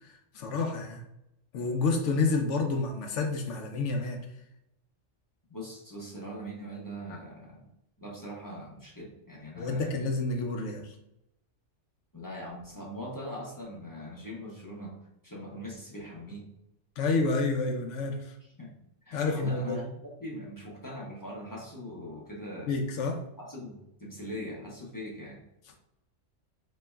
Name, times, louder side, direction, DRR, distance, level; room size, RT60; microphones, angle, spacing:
voice 1, 0.0-1.0 1.5-4.2 7.1-7.2 9.6-11.0 17.0-18.4 19.1-19.8 22.7-23.2, left 3 dB, 80° left, 4 dB, 0.9 m, -29 dB
voice 2, 5.5-7.7 8.0-9.9 12.1-15.0 15.2-16.5 18.6-18.7 19.1-19.9 20.2-22.8 23.4-25.4, equal, 20° left, -4 dB, 0.7 m, -41 dB
4.3 x 3.0 x 2.2 m, 0.84 s
omnidirectional pair, 1.2 m